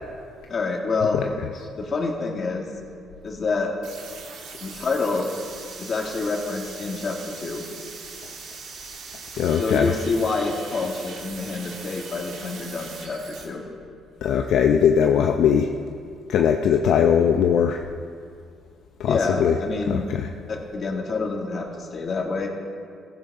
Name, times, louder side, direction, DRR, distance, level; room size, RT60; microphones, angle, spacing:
voice 1, 0.5-1.2 1.8-2.7 3.2-3.7 4.6-5.3 5.8-7.6 9.5-13.6 19.1-20.1 20.5-22.5, left 3 dB, 45° left, 0 dB, 2.2 m, -27 dB
sound 1, 3.8-13.4, right 4 dB, 80° right, 2.4 m, -40 dB
voice 2, 9.3-9.9 14.2-15.7 16.3-17.8 19.0-19.6 19.9-20.3, left 8 dB, 70° left, 4 dB, 0.6 m, -20 dB
15.5 x 14.5 x 3.7 m, 2.3 s
cardioid pair, 90°, 0 cm